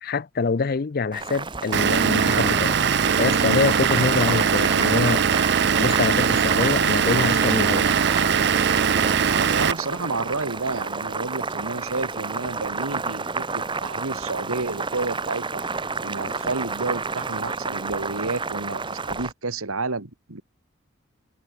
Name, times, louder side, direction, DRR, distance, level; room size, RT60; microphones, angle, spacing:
voice 1, 0.0-2.8 3.2-7.9, left 4 dB, 45° left, 0.5 m, -25 dB
Boiling, 1.1-19.3, right 4 dB, 25° right, 1.2 m, -31 dB
Vehicle / Engine, 1.7-9.7, right 6 dB, 50° right, 0.6 m, -21 dB
voice 2, 9.3-15.6 16.0-20.4, right 3 dB, 90° right, 1.9 m, -30 dB
head